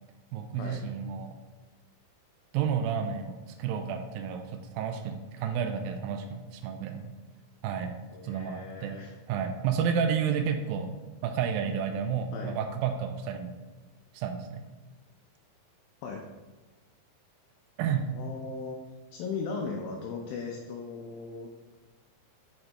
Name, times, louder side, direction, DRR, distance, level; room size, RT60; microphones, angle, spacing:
voice 1, 0.3-1.3 2.5-7.1 7.6-8.0 8.2-9.0 9.3-10.9 11.2-13.5 14.1-14.7 17.8-18.1, right 7 dB, 85° right, 5 dB, 2.0 m, -31 dB
voice 2, 8.1-9.1 12.3-12.6 16.0-16.2 18.2-18.8 19.1-21.5, left 4 dB, 80° left, 1 dB, 2.3 m, -37 dB
6.5 x 6.3 x 2.9 m, 1.2 s
omnidirectional pair, 4.6 m